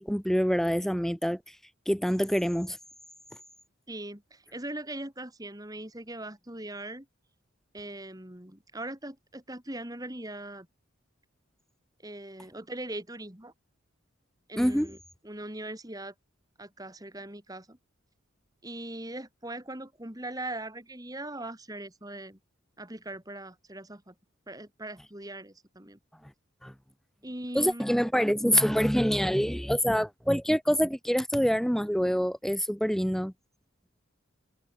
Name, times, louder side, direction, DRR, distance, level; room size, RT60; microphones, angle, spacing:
voice 1, 0.0-1.4 1.9-2.8 14.6-14.9 26.6-26.7 27.5-33.3, equal, ahead, 1.5 m, -26 dB
voice 2, 3.9-7.1 7.7-10.7 12.0-13.5 14.5-15.0 15.2-16.1 16.6-17.8 18.6-22.4 22.8-24.1 24.5-26.0 27.2-27.8, right 1 dB, 15° right, 2.7 m, -40 dB
head